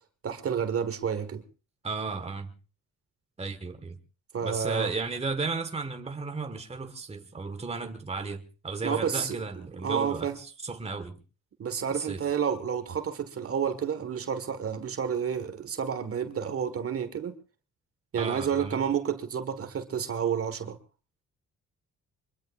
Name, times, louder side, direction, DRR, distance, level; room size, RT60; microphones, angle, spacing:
voice 1, 0.2-1.4 4.3-4.9 8.8-9.4 9.8-10.4 11.6-17.4 18.1-20.8, right 7 dB, 50° right, 1.6 m, -30 dB
voice 2, 1.8-2.5 3.4-4.0 4.4-11.2 11.9-12.2 18.2-18.9, right 4 dB, 20° right, 1.5 m, -34 dB
23.5 x 22.5 x 2.5 m
cardioid pair, 90°, 30 cm